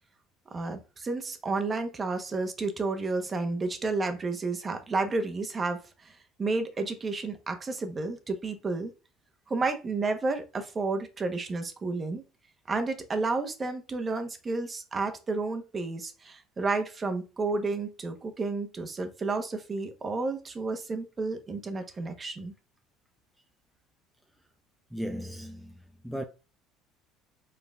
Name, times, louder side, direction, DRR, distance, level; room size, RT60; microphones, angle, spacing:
voice 1, 0.5-8.9 9.5-12.2 12.7-22.5, right 3 dB, 30° right, 0.9 m, -31 dB
voice 2, 24.9-25.7 26.0-26.3, equal, ahead, 0.5 m, -35 dB
5.4 x 3.8 x 2.3 m
supercardioid pair, 100°, 0 cm